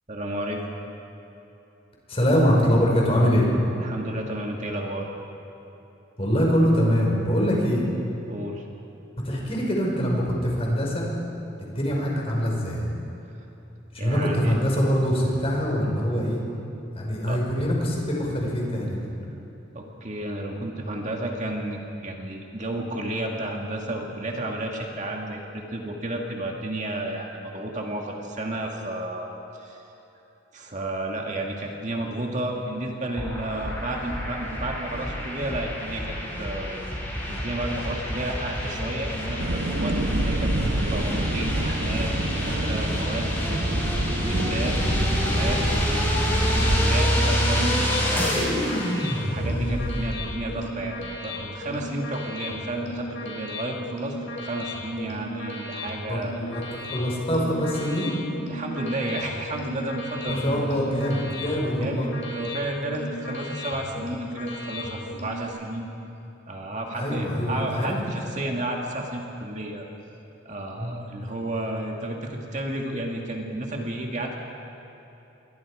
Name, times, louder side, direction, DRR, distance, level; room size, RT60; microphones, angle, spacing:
voice 1, 0.1-0.6 3.8-5.1 8.3-8.7 14.0-14.6 17.3-17.4 19.7-29.3 29.5-29.8 30.5-36.8 37.2-46.3 46.5-48.5 49.2-54.1 54.4-56.4 58.5-60.8 61.8-65.9 66.5-69.9 70.5-74.4, right 1 dB, 40° right, 0 dB, 2.1 m, -32 dB
voice 2, 2.1-3.5 6.2-7.9 9.2-11.1 11.6-12.9 13.9-16.4 16.9-19.0 40.6-40.7 49.6-49.8 56.1-58.1 60.2-62.1 66.9-68.0 70.7-70.9, equal, 30° left, -2 dB, 5.2 m, -24 dB
sound 1, 33.2-50.1, equal, 10° left, 5.6 m, -27 dB
sound 2, 39.4-46.8, right 1 dB, 75° right, 1.3 m, -28 dB
sound 3, 47.0-65.5, left 1 dB, 80° left, 4.9 m, -36 dB
28.0 x 23.0 x 5.0 m, 3.0 s
head